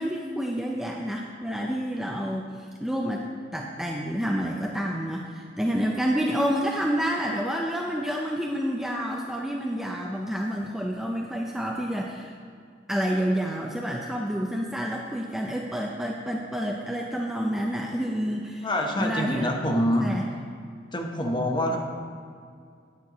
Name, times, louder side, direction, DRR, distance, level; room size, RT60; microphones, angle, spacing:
voice 1, 0.0-3.3 3.5-12.3 12.9-18.7 19.0-19.5 20.0-20.2, equal, ahead, -1 dB, 0.5 m, -29 dB
voice 2, 18.6-20.1 20.9-21.8, left 1 dB, 25° left, 2 dB, 0.9 m, -25 dB
9.6 x 4.5 x 6.0 m, 2.2 s
head